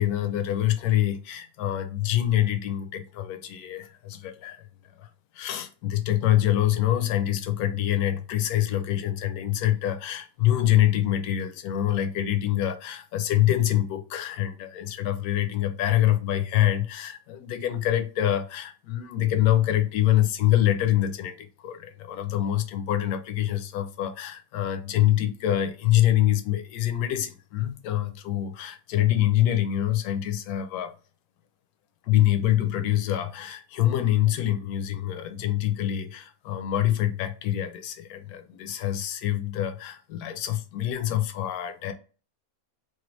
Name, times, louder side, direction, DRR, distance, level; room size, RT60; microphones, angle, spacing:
voice 1, 0.0-4.7 5.0-5.1 5.3-30.9 32.0-41.9, left 12 dB, 85° left, 1.1 m, -25 dB
3.2 x 2.4 x 3.0 m
omnidirectional pair, 1.5 m